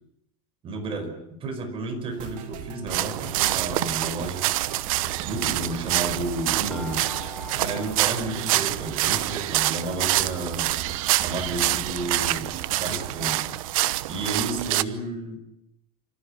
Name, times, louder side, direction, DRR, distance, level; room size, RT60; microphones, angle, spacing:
voice 1, 0.6-1.1 1.4-4.5 5.2-7.1 7.6-10.8 11.2-12.5 12.8-13.5 14.1-15.4, right 2 dB, 30° right, 6 dB, 5.3 m, -32 dB
sound 1, 2.1-13.3, right 8 dB, 50° right, 2.8 m, -39 dB
sound 2, 2.9-14.8, right 17 dB, 80° right, 1.0 m, -26 dB
sound 3, 6.7-9.2 9.5-10.5 11.0-11.1 11.4-11.5, left 3 dB, ahead, 1.9 m, -45 dB
26.5 x 14.5 x 10.0 m, 0.84 s
supercardioid pair, 145°, 17 cm